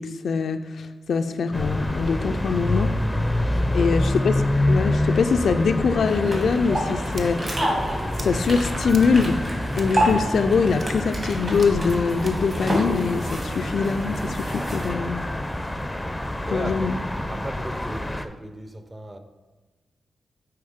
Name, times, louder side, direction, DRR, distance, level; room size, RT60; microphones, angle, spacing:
voice 1, 0.0-2.9 3.7-4.4 4.7-7.4 8.2-9.5 9.8-15.3 16.4-17.0, left 5 dB, 75° left, 0.3 m, -23 dB
sound 1, 1.5-18.3, left 1 dB, 10° left, 0.5 m, -27 dB
voice 2, 3.5-3.9 16.5-16.9 17.3-19.2, right 1 dB, 25° right, 0.7 m, -36 dB
sound 2, 6.0-14.9, equal, 45° right, 2.1 m, -29 dB
sound 3, 7.1-12.6, right 3 dB, 65° right, 0.6 m, -44 dB
8.6 x 3.4 x 3.6 m
cardioid pair, 50°, 0 cm